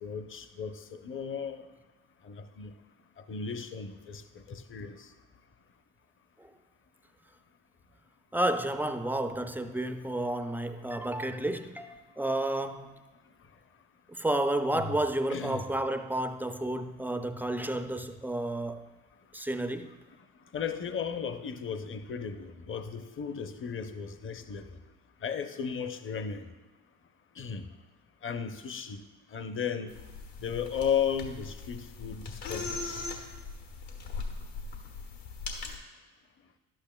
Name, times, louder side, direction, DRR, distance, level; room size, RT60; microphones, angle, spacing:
voice 1, 0.0-1.6 2.3-2.7 3.3-4.2 4.5-5.0 14.7-15.0 15.3-15.7 20.5-24.7 25.2-26.4 27.4-27.6 28.2-29.0 29.3-29.9 30.4-32.8, left 7 dB, 30° left, 0.7 m, -35 dB
voice 2, 8.3-13.0 14.2-18.8 19.3-19.9, right 1 dB, 5° right, 0.4 m, -31 dB
sound 1, 29.9-35.8, left 4 dB, 75° left, 1.6 m, -40 dB
11.5 x 8.9 x 2.2 m
supercardioid pair, 75°, 39 cm